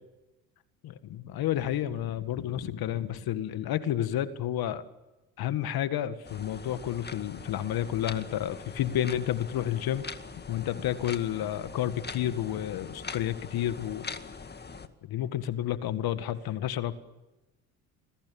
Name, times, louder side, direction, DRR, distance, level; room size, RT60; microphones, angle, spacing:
voice 1, 0.8-4.8 5.4-10.0 10.5-14.1 15.0-16.9, left 11 dB, 60° left, 12 dB, 1.9 m, -30 dB
sound 1, 6.2-14.9, left 4 dB, 25° left, 2.1 m, -43 dB
29.0 x 22.0 x 7.2 m, 1.0 s
supercardioid pair, 70°, 41 cm